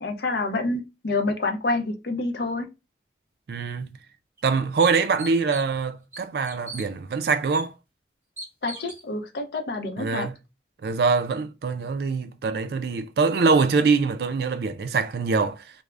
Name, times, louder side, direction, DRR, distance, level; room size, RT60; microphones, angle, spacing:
voice 1, 0.0-2.7 8.6-10.3, left 2 dB, 65° left, 0.5 m, -27 dB
voice 2, 3.5-4.0 4.4-7.7 10.0-10.3 10.8-15.6, right 4 dB, 60° right, 0.3 m, -24 dB
sound 1, 3.8-3.9 4.4-4.5 4.8-5.8 6.1-6.9 7.5-7.6 8.4-9.0, right 1 dB, 10° right, 0.8 m, -39 dB
2.4 x 2.0 x 3.2 m
head